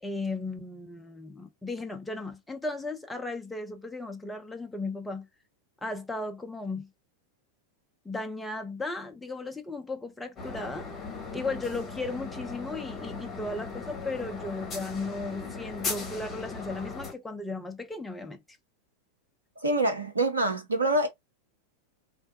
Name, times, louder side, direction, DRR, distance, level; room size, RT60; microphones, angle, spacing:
voice 1, 0.0-5.3 5.8-6.9 8.0-18.4, left 3 dB, 5° left, 0.6 m, -36 dB
sound 1, 10.4-17.1, left 4 dB, 25° left, 1.2 m, -38 dB
voice 2, 19.6-21.1, right 1 dB, 80° right, 0.8 m, -25 dB
3.3 x 2.5 x 2.7 m
figure-of-eight pair, 90°, 0 cm